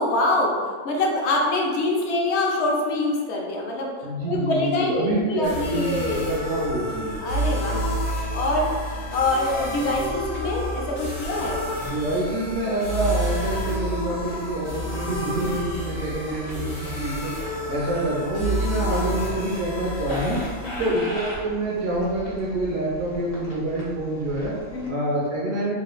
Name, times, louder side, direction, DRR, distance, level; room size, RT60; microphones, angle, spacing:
voice 1, 0.0-3.9 4.3-6.3 7.2-7.8 8.3-11.6 20.6-20.9 24.7-25.0, left 2 dB, 65° left, -1 dB, 0.8 m, -25 dB
voice 2, 4.0-7.1 11.8-17.3 17.7-20.4 20.8-24.5 24.9-25.8, right 1 dB, 75° right, -5 dB, 0.9 m, -26 dB
sound 1, 5.4-24.9, equal, 80° left, 1.3 m, -30 dB
3.2 x 2.2 x 3.0 m, 1.5 s
omnidirectional pair, 1.3 m